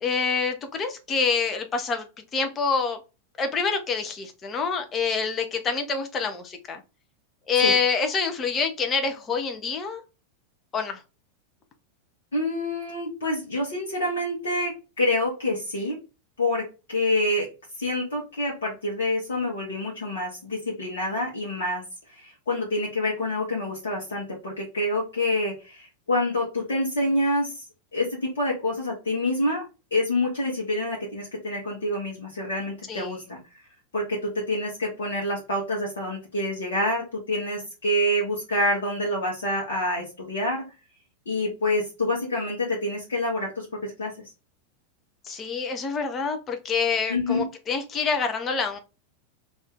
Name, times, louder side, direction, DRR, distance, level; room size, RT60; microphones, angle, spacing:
voice 1, 0.0-2.1 2.3-3.0 3.4-6.8 7.5-10.0 10.7-11.0 32.9-33.2 45.2-48.8, left 5 dB, 25° left, 6 dB, 0.6 m, -26 dB
voice 2, 12.3-16.0 16.4-17.5 17.8-27.6 27.9-33.4 33.9-40.6 41.3-44.1 47.1-47.4, left 1 dB, 65° left, -2 dB, 0.9 m, -27 dB
2.6 x 2.4 x 3.5 m, 0.30 s
figure-of-eight pair, 90°, 0 cm